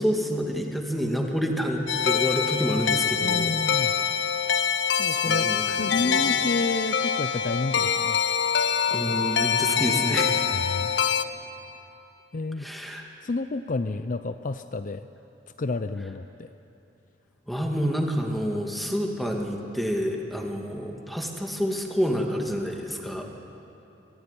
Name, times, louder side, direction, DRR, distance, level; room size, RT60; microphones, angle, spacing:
voice 1, 0.0-3.6 5.1-6.2 8.9-10.5 12.6-13.0 17.5-23.3, equal, ahead, 1 dB, 2.2 m, -28 dB
sound 1, 1.9-11.2, left 7 dB, 80° left, 0.8 m, -25 dB
voice 2, 3.2-3.9 5.0-8.2 10.5-10.9 12.3-12.7 13.2-15.1 15.6-16.5, left 3 dB, 45° left, 10 dB, 0.6 m, -30 dB
23.5 x 14.5 x 9.9 m, 2.9 s
head